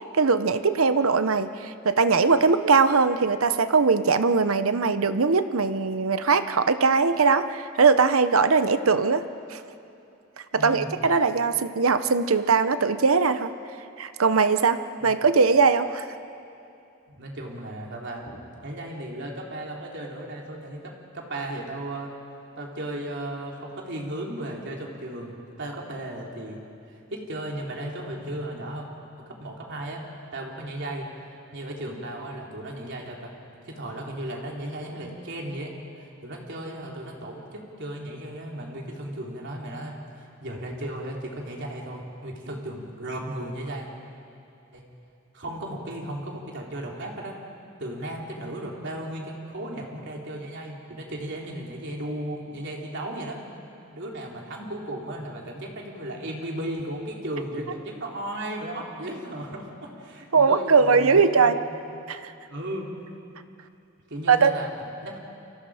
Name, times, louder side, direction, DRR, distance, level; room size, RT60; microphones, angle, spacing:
voice 1, 0.1-9.2 9.5-9.6 10.5-13.5 14.0-14.8 15.0-16.1 60.3-61.5 62.1-62.3 64.3-64.5, right 4 dB, 90° right, 11 dB, 0.9 m, -20 dB
voice 2, 10.6-10.9 15.0-15.1 17.1-22.1 22.6-26.6 27.1-28.9 29.2-31.1 31.5-33.3 33.7-35.7 36.0-43.9 44.7-44.8 45.3-47.4 47.8-53.4 53.9-61.9 62.5-62.9 63.4-63.5 64.1-64.7 65.0-65.2, right 1 dB, 60° right, -1 dB, 3.6 m, -35 dB
29.0 x 24.5 x 5.0 m, 2.7 s
head